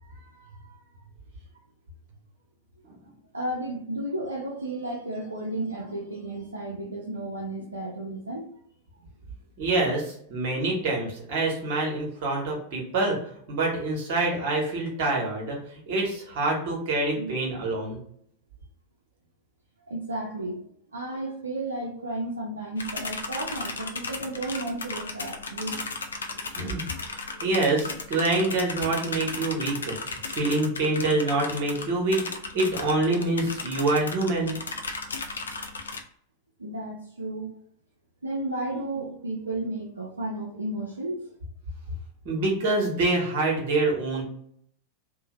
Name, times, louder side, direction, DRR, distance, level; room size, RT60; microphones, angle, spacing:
voice 1, 0.0-0.8 3.3-8.5 17.2-17.4 19.9-20.7 20.9-25.8 26.4-26.5 26.9-27.5 36.6-37.6 38.2-41.3, right 1 dB, 80° right, -3 dB, 0.5 m, -33 dB
voice 2, 9.6-13.2 13.5-18.0 26.5-32.2 32.5-34.5 42.2-44.2, right 2 dB, 50° right, -1 dB, 1.0 m, -26 dB
sound 1, 22.8-36.0, left 4 dB, 70° left, 0.3 m, -35 dB
2.7 x 2.1 x 2.9 m, 0.66 s
figure-of-eight pair, 90°, 0 cm